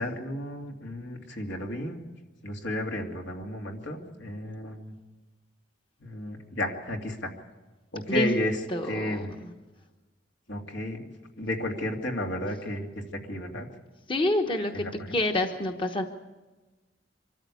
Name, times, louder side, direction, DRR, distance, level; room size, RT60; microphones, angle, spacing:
voice 1, 0.0-2.0 2.4-4.9 6.0-7.3 7.9-8.6 8.9-9.3 10.5-11.0 11.4-13.0 13.3-13.7 14.7-15.1, left 1 dB, 80° left, 2 dB, 2.7 m, -32 dB
voice 2, 8.7-9.5 14.1-14.8 15.1-16.0, left 1 dB, 30° left, 4 dB, 1.1 m, -27 dB
25.0 x 13.5 x 8.4 m, 1.2 s
head